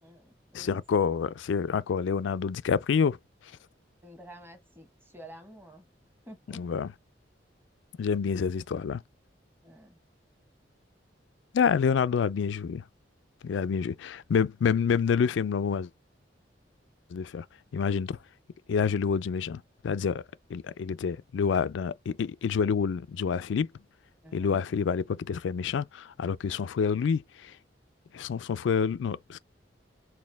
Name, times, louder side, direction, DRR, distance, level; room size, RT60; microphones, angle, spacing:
voice 1, 0.0-0.8 4.0-5.9 6.2-6.6 9.6-10.0 24.2-24.6, equal, 15° right, 1.1 m, -49 dB
voice 2, 0.5-3.2 6.5-6.9 8.0-9.0 11.5-12.8 13.4-15.9 17.1-17.5 17.7-18.2 18.7-20.2 20.5-23.7 24.3-27.5 28.1-29.4, left 6 dB, 75° left, 0.4 m, -28 dB
4.2 x 2.2 x 3.4 m
head